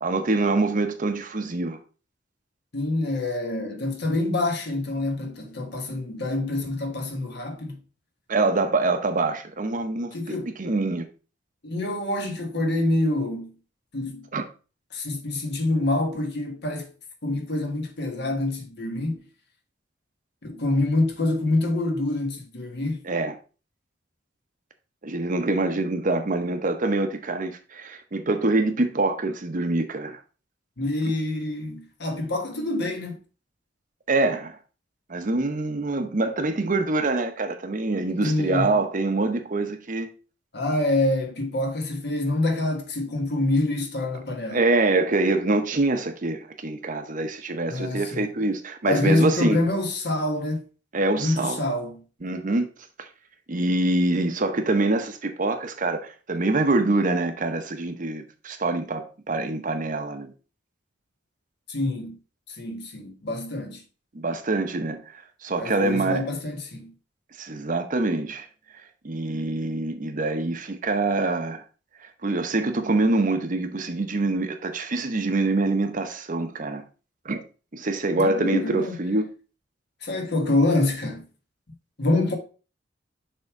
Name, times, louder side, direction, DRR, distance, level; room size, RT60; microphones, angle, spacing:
voice 1, 0.0-1.8 8.3-11.1 14.3-14.4 23.1-23.4 25.0-30.2 34.1-34.6 35.1-40.1 44.5-49.6 50.9-51.6 52.2-52.7 53.0-53.1 53.5-60.3 64.1-65.0 65.4-66.2 67.4-68.5 69.0-71.6 72.2-76.8 77.2-77.4 77.7-79.3, right 2 dB, 45° right, 0.8 m, -25 dB
voice 2, 2.7-7.8 10.1-10.6 11.6-13.5 13.9-14.2 14.9-16.9 17.2-19.2 20.4-23.0 30.8-33.2 38.2-38.8 40.5-44.6 47.7-48.2 48.9-50.6 51.2-52.0 61.7-62.2 62.5-63.8 65.6-66.9 78.2-78.9 80.0-81.2 82.0-82.4, left 2 dB, 60° left, 1.4 m, -26 dB
6.6 x 3.6 x 4.7 m
head